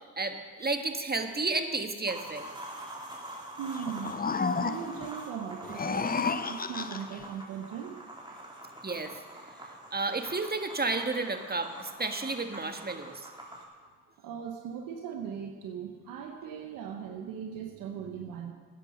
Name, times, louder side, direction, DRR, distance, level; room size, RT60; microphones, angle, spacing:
voice 1, 0.2-2.5 8.8-9.1 9.9-13.3, right 3 dB, 30° right, 6 dB, 1.5 m, -32 dB
sound 1, 2.0-13.6, right 1 dB, 15° right, 3.6 m, -45 dB
voice 2, 3.6-4.2 4.6-6.2 6.5-8.1 8.5-8.6 13.8-13.9 14.2-18.5, right 7 dB, 90° right, 4 dB, 0.9 m, -39 dB
sound 2, 3.7-5.1 5.6-7.2, left 4 dB, 30° left, 0.7 m, -31 dB
14.0 x 9.9 x 5.5 m, 1.5 s
supercardioid pair, 50°, 32 cm